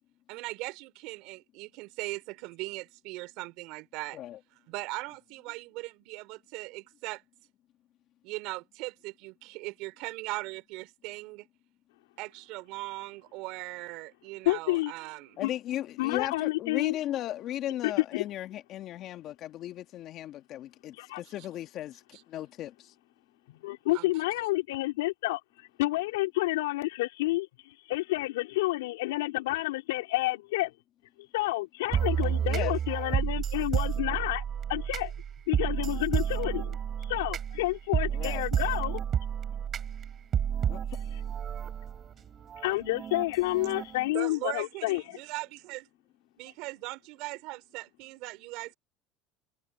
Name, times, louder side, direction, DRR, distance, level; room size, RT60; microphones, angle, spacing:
voice 1, 0.3-4.2 4.6-7.2 8.2-11.5 12.2-15.4 22.1-22.2 23.9-24.1 44.1-45.9 46.4-48.8, right 22 dB, 70° right, 4.0 m, -39 dB
voice 2, 14.4-14.9 15.4-15.5 16.0-17.0 17.8-18.2 21.0-21.2 23.5-30.7 31.3-34.4 34.7-35.1 35.5-36.8 37.1-39.0 42.6-45.0, left 19 dB, 90° left, 4.6 m, -29 dB
voice 3, 15.4-22.9 32.2-32.8 38.1-38.4 40.7-40.8, left 13 dB, 50° left, 2.5 m, -36 dB
sound 1, 31.9-44.1, right 8 dB, 35° right, 6.2 m, -31 dB
supercardioid pair, 110°, 0 cm